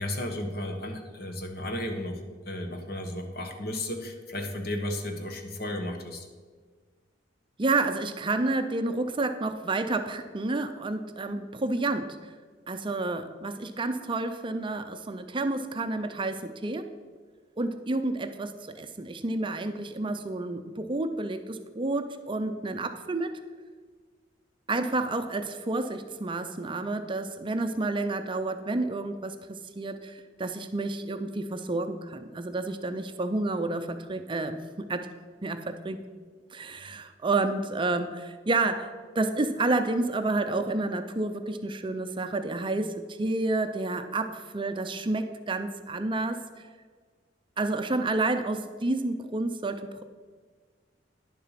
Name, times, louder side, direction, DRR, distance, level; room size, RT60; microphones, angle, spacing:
voice 1, 0.0-2.2 2.4-6.3, left 1 dB, 55° left, 5 dB, 1.3 m, -34 dB
voice 2, 7.6-12.2 12.7-16.9 17.6-23.4 24.7-35.1 35.4-36.0 36.5-46.4 47.6-50.0, right 2 dB, 25° right, 9 dB, 0.5 m, -30 dB
10.5 x 7.1 x 5.8 m, 1.5 s
head